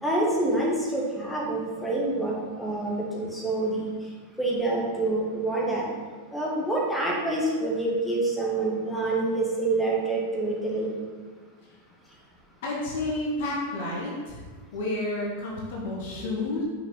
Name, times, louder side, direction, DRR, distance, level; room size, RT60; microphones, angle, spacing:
voice 1, 0.0-3.9 4.4-5.9 6.3-10.9 16.1-16.3, right 2 dB, 5° left, -3 dB, 1.6 m, -27 dB
voice 2, 12.6-14.4 14.7-16.6, left 2 dB, 55° left, -3 dB, 1.3 m, -30 dB
5.8 x 5.7 x 3.9 m, 1.5 s
figure-of-eight pair, 90°, 0 cm